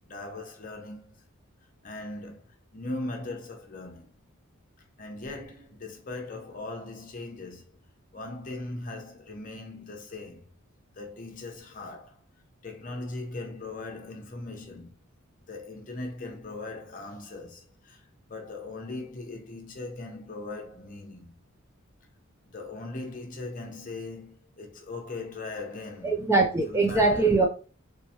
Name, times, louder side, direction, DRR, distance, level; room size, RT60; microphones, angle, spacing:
voice 1, 0.0-1.1 1.8-2.5 2.7-4.2 5.0-10.4 11.0-12.2 12.6-15.0 15.5-18.0 18.3-21.3 22.5-26.2 26.6-27.4, left 2 dB, 40° left, 0.8 m, -39 dB
voice 2, 26.0-27.5, right 3 dB, 15° right, 0.3 m, -22 dB
3.3 x 2.9 x 2.8 m
head